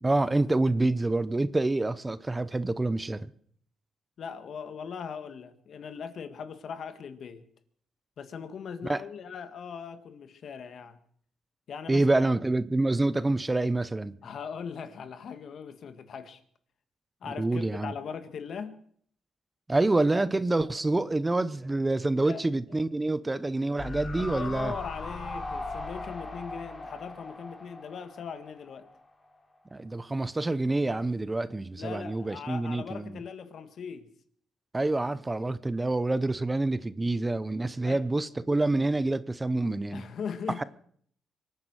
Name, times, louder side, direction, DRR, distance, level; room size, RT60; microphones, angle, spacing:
voice 1, 0.0-3.3 8.8-9.0 11.9-14.1 17.4-17.9 19.7-24.7 29.7-33.2 34.7-40.0 40.6-40.7, right 2 dB, 15° right, 0.7 m, -27 dB
voice 2, 4.2-7.4 8.2-11.0 11.7-12.3 14.2-16.4 17.2-18.8 22.2-22.4 24.2-28.9 31.8-34.1 37.8-38.0 39.9-40.6, left 6 dB, 60° left, 1.7 m, -39 dB
sound 1, 23.8-29.0 29.3-29.4, left 2 dB, 20° left, 3.2 m, -39 dB
24.0 x 9.5 x 6.4 m
cardioid pair, 90°, 0 cm